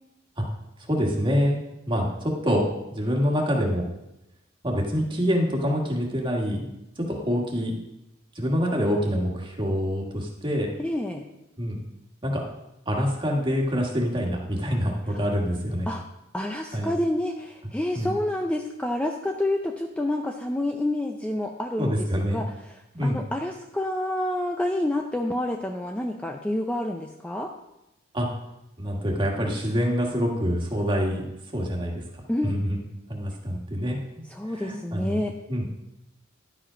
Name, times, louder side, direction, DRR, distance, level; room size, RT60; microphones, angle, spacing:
voice 1, 0.9-1.6 1.9-2.6 2.9-3.8 4.6-6.7 7.0-7.8 8.3-10.7 11.6-11.8 12.2-12.4 12.9-15.9 16.7-16.9 17.9-18.1 21.8-22.4 22.9-23.2 28.1-28.3 28.8-32.0 32.4-32.8 33.1-34.0 34.5-35.2 35.5-35.7, equal, 25° right, 0 dB, 1.6 m, -26 dB
voice 2, 10.8-11.3 15.1-15.2 15.9-16.0 16.3-22.8 23.0-27.5 32.3-32.5 34.3-35.3, left 1 dB, 5° left, 2 dB, 0.4 m, -28 dB
11.0 x 5.0 x 5.0 m, 0.90 s
head